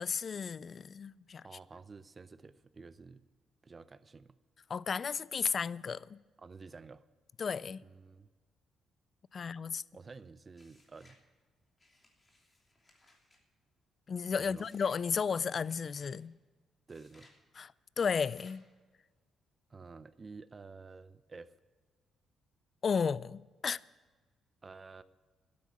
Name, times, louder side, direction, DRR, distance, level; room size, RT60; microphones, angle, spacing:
voice 1, 0.0-1.5 4.7-6.2 7.4-7.8 9.3-9.8 14.1-16.3 17.6-18.6 22.8-23.8, left 6 dB, 45° left, 0.3 m, -34 dB
voice 2, 1.4-3.2 3.6-4.3 6.4-7.1 7.8-8.3 9.9-11.2 14.4-14.7 16.9-17.3 19.7-21.5 24.6-25.0, right 4 dB, 30° right, 0.6 m, -51 dB
sound 1, 10.5-11.2 11.8-13.4 14.5-15.0 15.6-16.2 16.9-17.4 18.1-18.6, left 2 dB, 25° left, 3.0 m, -64 dB
12.0 x 8.5 x 8.4 m
cardioid pair, 90°, 0 cm